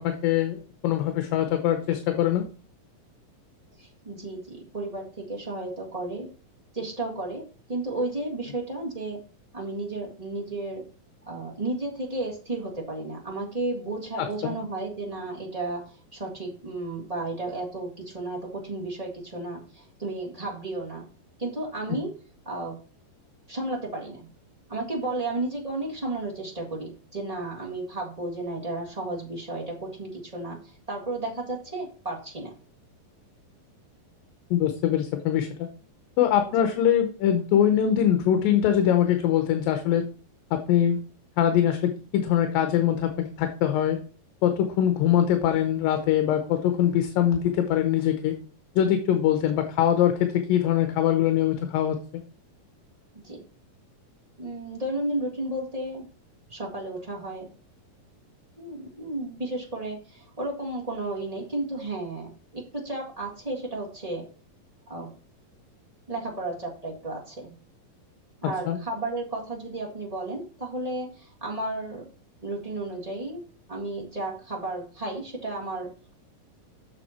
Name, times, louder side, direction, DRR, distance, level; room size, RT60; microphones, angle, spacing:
voice 1, 0.0-2.4 14.4-14.5 21.9-22.0 34.5-35.5 36.2-40.1 40.5-41.0 41.4-44.0 44.4-48.3 48.8-52.0 68.7-68.8, left 10 dB, 80° left, 7 dB, 2.5 m, -23 dB
voice 2, 3.8-6.3 6.7-9.2 9.5-10.8 11.3-21.1 21.4-22.1 22.4-22.8 23.5-24.3 24.7-32.5 49.1-49.2 53.1-53.4 54.4-56.1 56.5-57.5 58.6-64.3 64.9-65.1 66.1-67.5 68.4-72.1 72.4-73.4 73.7-76.1, right 2 dB, 35° right, -3 dB, 0.6 m, -33 dB
7.4 x 6.4 x 4.3 m, 0.38 s
omnidirectional pair, 4.1 m